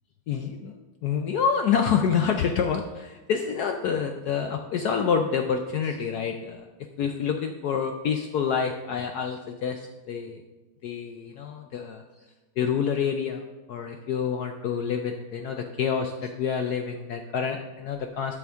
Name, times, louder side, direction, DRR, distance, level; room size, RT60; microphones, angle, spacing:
voice 1, 0.3-6.7 7.0-10.4 10.8-12.0 12.6-13.4 13.7-18.4, left 7 dB, 70° left, 4 dB, 0.9 m, -27 dB
12.5 x 6.0 x 3.5 m, 1.2 s
omnidirectional pair, 2.2 m